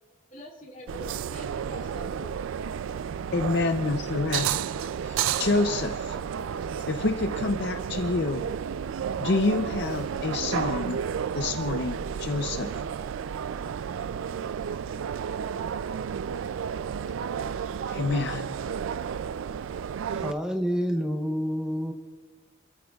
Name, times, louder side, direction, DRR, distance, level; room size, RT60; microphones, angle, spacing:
voice 1, 0.3-2.3, left 1 dB, 40° left, -2 dB, 2.5 m, -44 dB
sound 1, 0.9-20.3, right 8 dB, 85° right, 0.3 m, -32 dB
voice 2, 3.3-4.5 5.0-6.2 6.9-8.5 9.2-11.0 11.3-12.7 17.9-18.5, left 3 dB, 60° left, 6 dB, 0.6 m, -27 dB
voice 3, 20.1-21.9, equal, 5° right, 3 dB, 0.7 m, -28 dB
27.5 x 13.5 x 2.3 m, 1.4 s
head